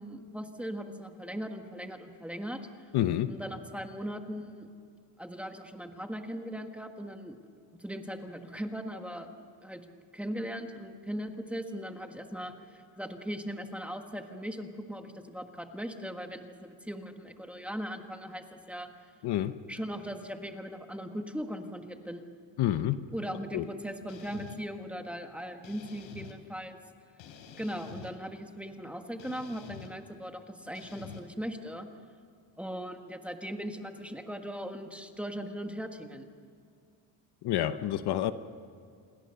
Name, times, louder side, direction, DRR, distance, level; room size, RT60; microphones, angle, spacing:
voice 1, 0.0-2.9 3.3-4.7 5.2-7.4 7.8-9.8 10.1-18.9 19.7-22.2 23.1-26.8 27.6-31.9 32.6-36.3, equal, 5° right, 5 dB, 1.5 m, -39 dB
voice 2, 2.9-3.3 19.2-19.6 22.6-23.0 23.5-23.7 37.4-38.3, left 12 dB, 60° left, 11 dB, 1.0 m, -28 dB
sound 1, 24.1-24.6 25.6-26.4 27.2-28.1 29.2-29.9 30.7-31.2, left 8 dB, 85° left, 3.6 m, -48 dB
28.5 x 21.5 x 6.9 m, 2.3 s
cardioid pair, 150°, 45 cm